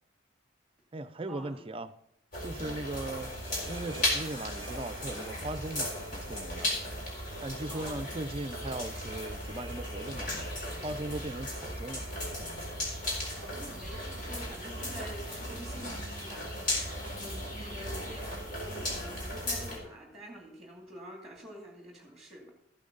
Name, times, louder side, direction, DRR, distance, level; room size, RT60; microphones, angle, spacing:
voice 1, 0.9-1.9 2.4-3.3 3.7-6.7 7.4-10.3 10.8-12.0 12.4-12.6, right 2 dB, 25° right, 11 dB, 0.5 m, -38 dB
sound 1, 2.3-19.8, left 1 dB, 45° left, 4.1 m, -36 dB
sound 2, 3.2-14.3 14.6-15.2 15.4-17.4 17.7-18.5 19.2-19.3, equal, 25° left, 4.9 m, -53 dB
voice 2, 13.4-22.5, right 1 dB, ahead, 1 dB, 2.4 m, -47 dB
14.0 x 8.8 x 4.0 m, 0.79 s
head